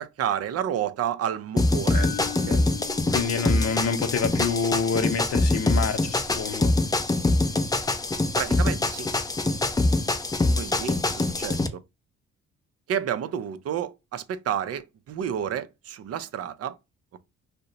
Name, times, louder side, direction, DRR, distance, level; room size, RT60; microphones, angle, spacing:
voice 1, 0.0-2.1 2.5-2.7 8.4-9.1 10.6-11.8 12.9-16.8, right 9 dB, 55° right, 0.5 m, -30 dB
sound 1, 1.6-11.7, left 2 dB, 15° left, 0.4 m, -24 dB
sound 2, 1.9-6.0, left 12 dB, 30° left, 0.8 m, -41 dB
voice 2, 3.1-6.7, left 5 dB, 55° left, 0.7 m, -27 dB
2.8 x 2.1 x 3.8 m
cardioid pair, 90°, 30 cm